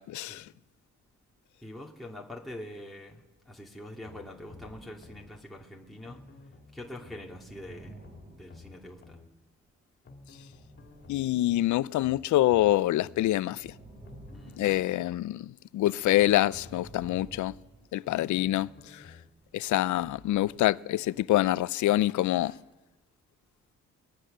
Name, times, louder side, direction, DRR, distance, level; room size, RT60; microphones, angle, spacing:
voice 1, 0.1-0.4 11.1-13.7 14.6-17.5 17.9-18.7 18.9-19.0 19.5-22.5, left 15 dB, 75° left, 0.6 m, -26 dB
voice 2, 1.6-6.2 6.7-9.2 14.3-14.7, left 1 dB, ahead, 2.4 m, -44 dB
sound 1, 3.0-3.4 4.1-6.4 7.0-9.4 10.4-12.5 13.0-15.4 15.9-18.6 19.3-21.6 22.1-22.6, right 2 dB, 30° right, 7.6 m, -53 dB
sound 2, 4.0-5.3 6.0-7.3 8.0-9.3 10.0-11.3 12.0-13.3 14.0-15.3 16.0-17.3 18.0-19.3 20.0-20.1, left 4 dB, 40° left, 2.6 m, -52 dB
23.5 x 19.0 x 6.7 m
cardioid pair, 90°, 30 cm